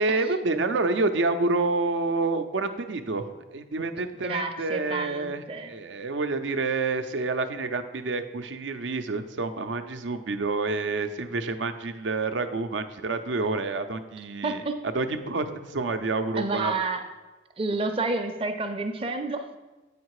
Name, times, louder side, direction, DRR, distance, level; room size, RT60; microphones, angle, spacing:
voice 1, 0.0-14.6 14.9-16.7, right 3 dB, 85° right, 9 dB, 0.6 m, -28 dB
voice 2, 4.2-5.7 14.4-14.8 16.4-17.0 17.6-19.6, right 3 dB, 30° right, 5 dB, 0.5 m, -29 dB
8.1 x 5.1 x 4.8 m, 1.2 s
head